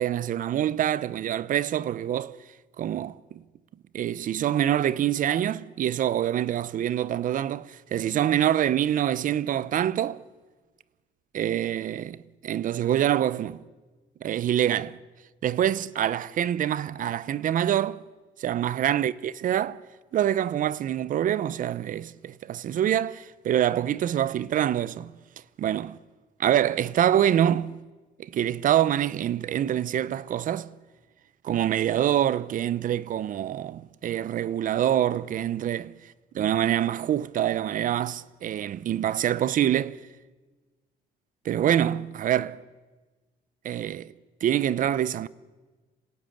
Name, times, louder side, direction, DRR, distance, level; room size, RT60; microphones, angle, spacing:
voice 1, 0.0-2.3 2.8-3.4 3.9-10.2 11.3-13.6 14.2-15.0 15.4-18.0 18.4-19.8 20.1-25.1 25.6-25.9 26.4-27.8 28.2-30.7 31.4-35.9 36.4-40.0 41.4-42.6 43.6-44.1 44.4-45.3, right 11 dB, 50° right, 0.8 m, -25 dB
26.5 x 17.5 x 7.9 m
cardioid pair, 110°, 17 cm